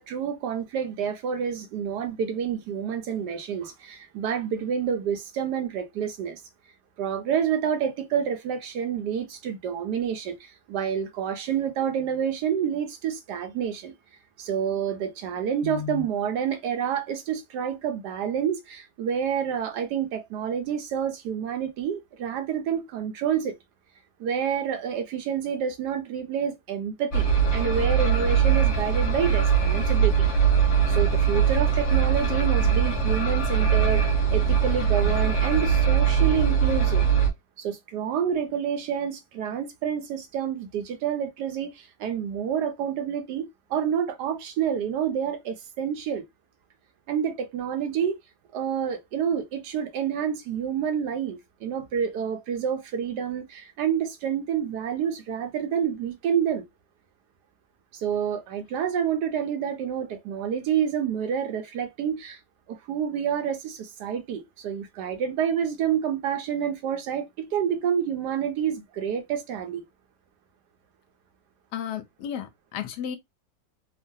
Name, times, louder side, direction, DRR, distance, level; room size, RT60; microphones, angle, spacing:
voice 1, 0.0-6.4 7.0-13.9 14.4-23.5 24.2-27.3 27.5-30.3 30.9-34.0 34.3-37.0 37.6-46.2 47.1-48.2 48.5-56.6 57.9-62.4 62.7-69.8, right 8 dB, 75° right, 1.1 m, -28 dB
sound 1, 27.1-37.3, right 7 dB, 55° left, 0.8 m, -21 dB
voice 2, 71.7-73.2, left 9 dB, 75° left, 1.1 m, -33 dB
3.0 x 2.2 x 2.6 m
omnidirectional pair, 1.9 m